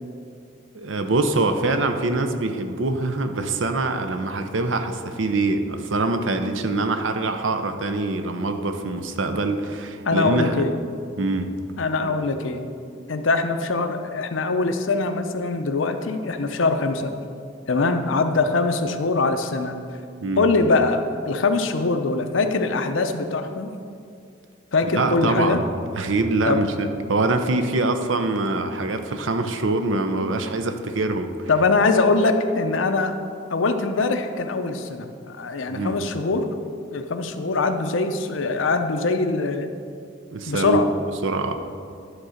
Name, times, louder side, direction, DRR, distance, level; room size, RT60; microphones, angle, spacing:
voice 1, 0.7-10.6 11.2-11.5 12.0-12.1 20.2-20.5 24.9-25.6 25.9-31.5 35.7-36.0 40.3-40.8 41.2-41.5, right 2 dB, 80° right, 7 dB, 0.7 m, -24 dB
voice 2, 10.0-10.8 11.8-12.6 13.1-17.1 17.7-19.8 20.4-23.7 24.7-25.6 26.5-26.6 31.5-33.2 33.5-36.5 36.9-39.7 40.5-40.9, left 3 dB, 85° left, 7 dB, 0.7 m, -22 dB
11.5 x 3.9 x 6.4 m, 2.4 s
head